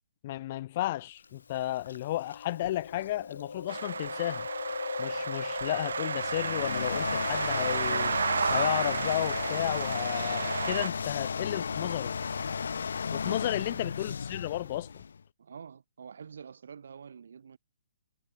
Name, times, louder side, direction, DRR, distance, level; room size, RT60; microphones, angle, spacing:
voice 1, 0.2-4.5 5.0-8.1 8.5-12.2 13.1-15.0, left 15 dB, 25° left, 1.3 m, -33 dB
Chewing mastication, 1.2-10.1, left 5 dB, 90° left, 5.1 m, -41 dB
sound 1, 3.7-10.9, right 5 dB, 75° right, 0.7 m, -32 dB
sound 2, 6.0-15.2, left 6 dB, 65° left, 2.2 m, -34 dB
voice 2, 13.2-13.8 15.4-17.6, right 6 dB, 55° right, 4.9 m, -47 dB
hypercardioid pair, 180°, 0 cm